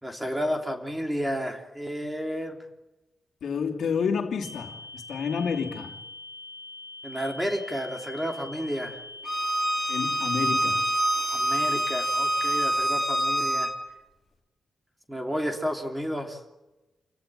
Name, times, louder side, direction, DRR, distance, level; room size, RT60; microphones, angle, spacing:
voice 1, 0.0-2.6 7.0-9.0 11.3-13.7 15.1-16.4, equal, 5° right, 3.0 m, -31 dB
voice 2, 3.4-6.0 9.9-10.9, left 6 dB, 65° left, 2.9 m, -29 dB
sound 1, 4.4-12.7, left 2 dB, 85° right, 3.2 m, -43 dB
Bowed string instrument, 9.3-13.7, right 1 dB, 10° left, 3.3 m, -26 dB
28.5 x 16.5 x 8.9 m
wide cardioid pair, 170°, 0 cm